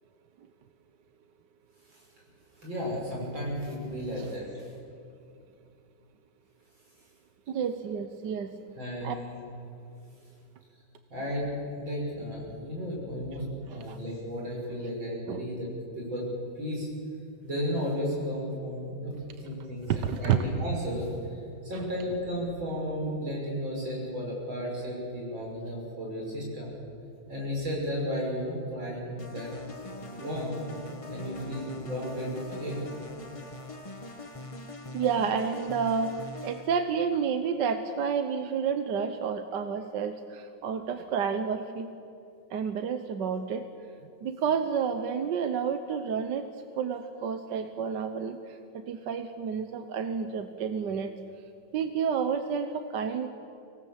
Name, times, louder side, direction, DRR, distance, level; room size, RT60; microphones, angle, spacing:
voice 1, 2.6-4.7 8.8-9.4 11.1-15.7 16.0-16.3 16.6-16.9 17.4-19.1 19.4-21.4 21.6-26.7 27.3-29.5 30.1-30.6 31.1-32.9, equal, 85° right, -3 dB, 7.1 m, -34 dB
voice 2, 7.5-8.5 9.0-9.2 13.9-14.0 15.3-15.4 19.9-20.4 34.9-41.9 42.5-43.7 44.2-46.5 46.8-48.6 48.9-51.1 51.7-53.3, right 6 dB, 70° right, 8 dB, 1.5 m, -30 dB
sound 1, 29.2-36.8, left 1 dB, 20° left, 0.9 m, -42 dB
25.0 x 18.0 x 7.4 m, 2.5 s
omnidirectional pair, 2.1 m